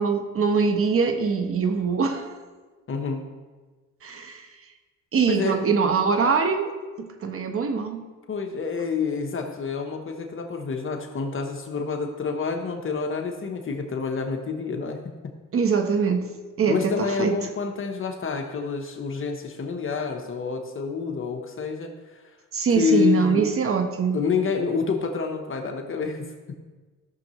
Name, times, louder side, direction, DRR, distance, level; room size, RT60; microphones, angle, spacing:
voice 1, 0.0-2.4 4.0-4.5 5.1-8.0 15.5-16.3 16.6-17.4 22.5-24.2, right 5 dB, 45° right, 6 dB, 1.1 m, -23 dB
voice 2, 2.9-3.3 5.3-5.6 8.3-15.3 16.7-22.2 22.7-23.6 24.1-26.3, left 5 dB, 45° left, 3 dB, 1.1 m, -28 dB
14.5 x 6.6 x 3.1 m, 1.3 s
cardioid pair, 90°, 30 cm